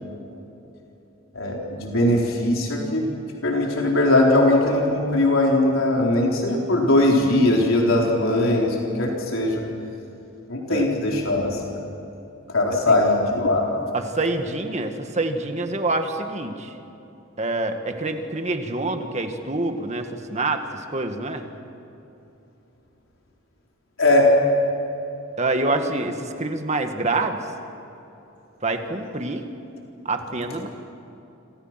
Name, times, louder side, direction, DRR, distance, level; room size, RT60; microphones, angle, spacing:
voice 1, 1.3-3.0 3.4-9.6 10.5-11.6 12.5-13.7 24.0-24.3, left 1 dB, 90° left, -1 dB, 4.1 m, -20 dB
voice 2, 13.9-16.7 17.4-21.4 25.4-27.4 28.6-29.5 30.1-30.7, right 2 dB, 35° right, 5 dB, 1.9 m, -26 dB
29.0 x 26.5 x 6.0 m, 2.9 s
head